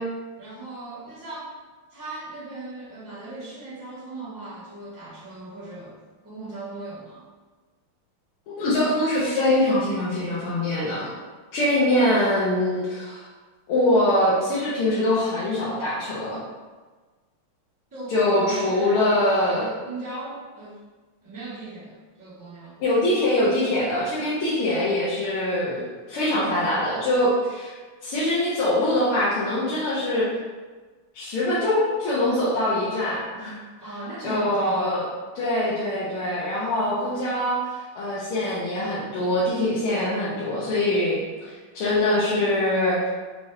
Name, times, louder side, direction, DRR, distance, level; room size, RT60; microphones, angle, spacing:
voice 1, 0.4-1.5 1.9-7.2 17.9-19.1 19.5-20.8 21.2-22.8 33.8-34.8, right 2 dB, 10° right, -10 dB, 1.1 m, -38 dB
voice 2, 8.5-11.1 11.5-13.2 13.7-16.4 18.1-19.6 22.8-27.7 28.0-30.3 31.1-33.6 34.2-35.0 35.4-37.6 38.0-43.1, left 1 dB, 85° left, -9 dB, 1.8 m, -23 dB
5.2 x 2.7 x 3.2 m, 1.3 s
omnidirectional pair, 2.3 m